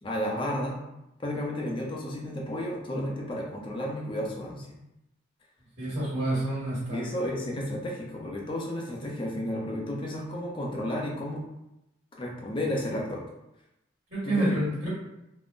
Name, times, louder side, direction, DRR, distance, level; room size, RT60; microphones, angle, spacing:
voice 1, 0.0-0.8 1.2-4.7 6.9-11.4 12.2-13.2 14.2-14.6, left 1 dB, 25° left, -1 dB, 0.5 m, -32 dB
voice 2, 5.8-7.0 14.1-14.9, right 1 dB, 55° right, -10 dB, 1.4 m, -28 dB
3.6 x 2.0 x 2.5 m, 0.88 s
head